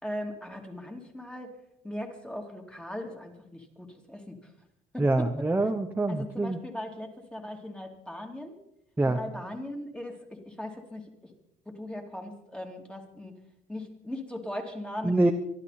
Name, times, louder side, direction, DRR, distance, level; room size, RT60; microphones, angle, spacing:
voice 1, 0.0-1.5 1.8-4.5 4.9-5.3 6.1-8.6 9.0-11.0 11.7-13.3 13.7-15.3, left 1 dB, 5° left, 3 dB, 2.8 m, -39 dB
voice 2, 5.0-6.6 9.0-9.2 15.0-15.3, right 2 dB, 10° right, 5 dB, 1.0 m, -25 dB
25.0 x 12.0 x 4.2 m, 0.79 s
cardioid pair, 110°, 17 cm